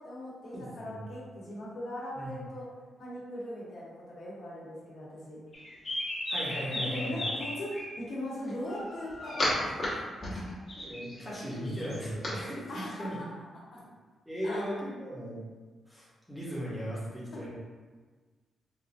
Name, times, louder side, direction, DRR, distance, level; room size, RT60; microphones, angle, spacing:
voice 1, 0.0-2.7 3.0-5.4 6.9-10.0 10.3-10.5 12.7-13.3 13.7-13.8 14.4-14.6, left 1 dB, 60° left, -6 dB, 0.9 m, -40 dB
voice 2, 0.5-1.0 2.1-2.4 6.3-7.2 10.8-13.2 14.3-15.4 15.9-17.5, equal, ahead, -8 dB, 0.8 m, -37 dB
sound 1, 5.5-7.8 8.7-9.9 10.2-12.3, left 1 dB, 35° left, 0.9 m, -34 dB
4.1 x 2.4 x 2.5 m, 1.4 s
wide cardioid pair, 180°, 0 cm